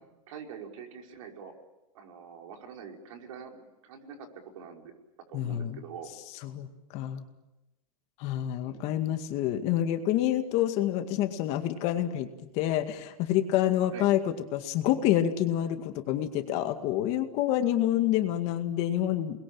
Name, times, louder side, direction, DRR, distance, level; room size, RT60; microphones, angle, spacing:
voice 1, 0.3-1.5 1.9-4.3 4.5-4.9 5.3-6.1 8.6-9.2 13.9-14.1, right 7 dB, 65° right, 2 dB, 5.4 m, -45 dB
voice 2, 5.3-5.8 6.4-6.7 6.9-7.2 8.2-12.3 12.5-19.4, left 12 dB, 35° left, 7 dB, 2.1 m, -27 dB
29.0 x 21.5 x 8.8 m, 0.97 s
supercardioid pair, 160°, 18 cm